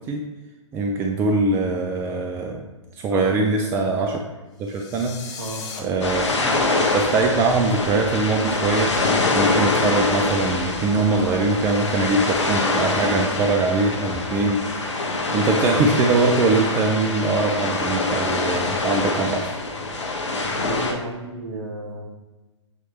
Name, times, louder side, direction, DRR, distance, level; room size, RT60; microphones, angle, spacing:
voice 1, 0.7-2.6 3.0-4.2 4.6-5.1 5.8-6.4 6.7-8.9 9.3-15.1 15.3-19.6, right 3 dB, 15° right, 2 dB, 0.4 m, -22 dB
sound 1, 4.6-5.8, left 6 dB, 25° left, 0.8 m, -37 dB
voice 2, 5.4-5.7 20.5-22.1, right 1 dB, 55° right, 0 dB, 1.5 m, -33 dB
sound 2, 6.0-20.9, left 2 dB, 65° left, 1.3 m, -24 dB
7.9 x 3.2 x 4.2 m, 1.1 s
figure-of-eight pair, 115°, 16 cm